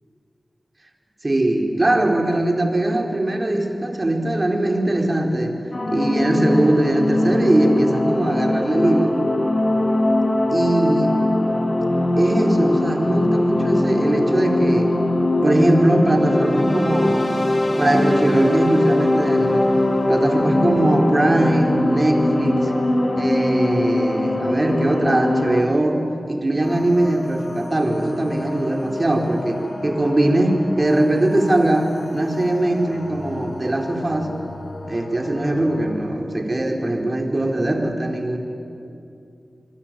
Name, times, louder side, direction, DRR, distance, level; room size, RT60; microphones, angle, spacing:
voice 1, 1.2-5.6 5.9-9.1 10.5-11.2 12.2-14.9 15.4-17.4 17.8-19.7 20.1-22.7 23.2-34.3 34.9-38.4, right 1 dB, 40° right, 3 dB, 4.3 m, -20 dB
sound 1, 5.7-25.6, left 1 dB, 45° left, 2.9 m, -21 dB
sound 2, 26.6-36.1, left 2 dB, 70° left, 5.0 m, -35 dB
27.5 x 22.5 x 9.2 m, 2.5 s
cardioid pair, 40°, 0 cm